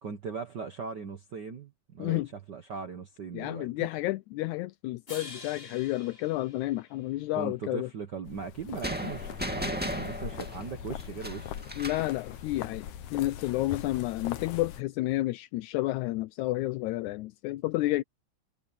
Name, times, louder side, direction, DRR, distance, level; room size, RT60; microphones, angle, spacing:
voice 1, 0.0-3.9 7.3-11.5, right 5 dB, 85° right, 0.9 m, -39 dB
voice 2, 3.3-7.9 11.8-18.0, left 17 dB, 80° left, 1.7 m, -31 dB
sound 1, 5.1-7.4, left 3 dB, 20° left, 2.2 m, -47 dB
sound 2, 8.2-14.8, left 10 dB, 65° left, 2.4 m, -41 dB
sound 3, 8.8-12.2, equal, 5° right, 1.7 m, -36 dB
omnidirectional pair, 3.9 m